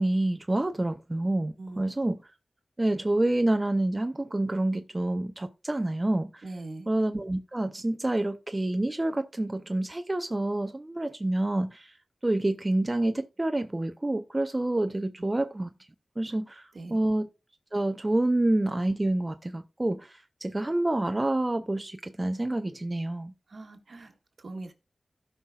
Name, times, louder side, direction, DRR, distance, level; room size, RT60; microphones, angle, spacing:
voice 1, 0.0-2.2 2.8-6.4 6.9-12.0 12.2-15.7 16.2-17.3 17.7-23.3, right 1 dB, 25° right, 0.6 m, -28 dB
voice 2, 6.4-6.9 16.7-17.0 23.5-24.7, right 2 dB, 60° right, 1.7 m, -41 dB
16.5 x 5.6 x 2.4 m
wide cardioid pair, 95°, 0 cm